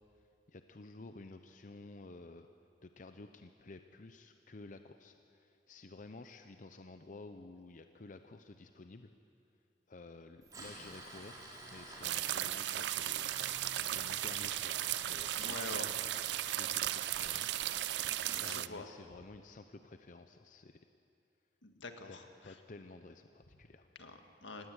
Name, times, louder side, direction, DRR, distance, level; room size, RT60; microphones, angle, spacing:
voice 1, 0.5-2.5 2.8-9.1 9.9-15.9 16.3-17.5 18.4-20.9 22.1-22.2 22.4-23.9, left 3 dB, 45° left, 8 dB, 0.6 m, -53 dB
Tools, 10.4-18.4, right 2 dB, 20° right, 3.5 m, -50 dB
sound 1, 12.0-18.7, right 13 dB, 65° right, 0.4 m, -36 dB
voice 2, 15.3-15.9 18.1-18.9 21.6-22.2 24.0-24.7, left 3 dB, 80° left, 5 dB, 1.8 m, -46 dB
18.5 x 17.5 x 8.0 m, 2.6 s
head